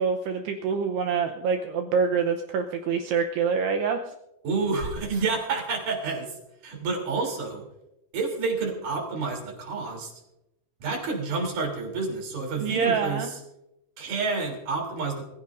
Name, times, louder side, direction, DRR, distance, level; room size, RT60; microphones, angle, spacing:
voice 1, 0.0-4.0 12.6-13.3, right 6 dB, 85° right, 4 dB, 2.4 m, -26 dB
voice 2, 4.4-6.3 6.6-7.6 8.1-10.1 10.8-13.4 14.0-15.3, right 4 dB, 45° right, 1 dB, 4.4 m, -29 dB
24.5 x 15.5 x 2.6 m, 0.88 s
omnidirectional pair, 5.8 m